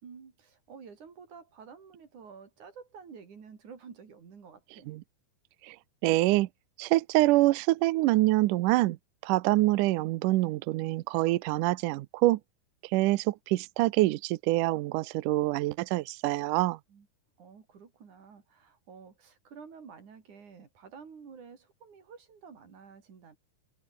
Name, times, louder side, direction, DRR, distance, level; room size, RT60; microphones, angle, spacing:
voice 1, 0.0-4.9 16.9-17.1 17.4-23.4, right 6 dB, 50° right, 4.6 m, -50 dB
voice 2, 6.0-6.5 6.8-9.0 9.2-12.4 12.9-16.8, right 18 dB, 80° right, 1.8 m, -25 dB
omnidirectional pair, 4.6 m